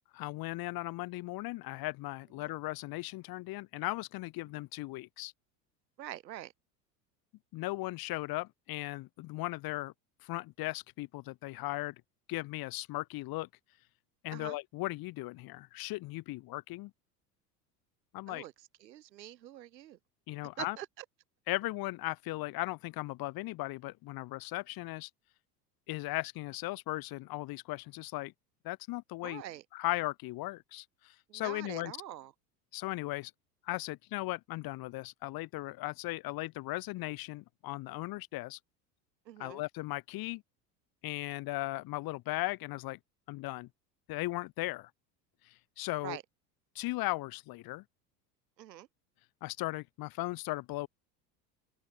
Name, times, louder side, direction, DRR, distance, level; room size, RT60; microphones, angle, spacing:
voice 1, 0.1-5.3 7.5-9.9 10.2-12.0 12.3-13.5 14.2-16.9 18.1-18.4 20.3-20.8 21.5-25.1 25.9-28.3 28.6-29.4 29.7-31.9 32.7-33.3 33.6-38.6 39.4-40.4 41.0-43.0 43.3-43.7 44.1-44.9 45.4-46.2 46.7-47.8 49.4-50.9, left 19 dB, 45° left, 1.0 m, -37 dB
voice 2, 6.0-6.5 14.3-14.6 18.3-18.5 18.8-20.0 20.6-21.0 29.2-29.6 31.3-32.3 39.2-39.6 46.0-46.2 48.6-48.9, right 13 dB, 85° right, 1.5 m, -44 dB
open air
hypercardioid pair, 80°, 50 cm